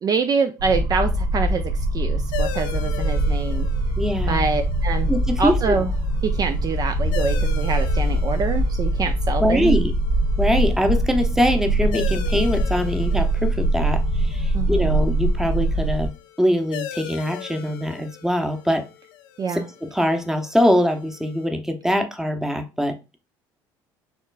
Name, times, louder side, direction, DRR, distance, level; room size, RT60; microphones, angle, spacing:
voice 1, 0.0-3.7 4.3-5.1 5.4-5.9 6.2-9.7 14.5-14.9 19.4-19.7, right 5 dB, 35° right, 7 dB, 0.4 m, -25 dB
sound 1, 0.6-16.1, right 1 dB, 80° right, 0.8 m, -22 dB
sound 2, 2.3-21.5, left 11 dB, 85° left, 0.4 m, -40 dB
voice 2, 4.0-4.4 5.1-5.7 9.4-9.9 10.4-16.1 16.4-18.8 19.5-23.2, equal, 5° right, 6 dB, 0.8 m, -23 dB
4.3 x 3.1 x 2.5 m, 0.28 s
hypercardioid pair, 70°, 11 cm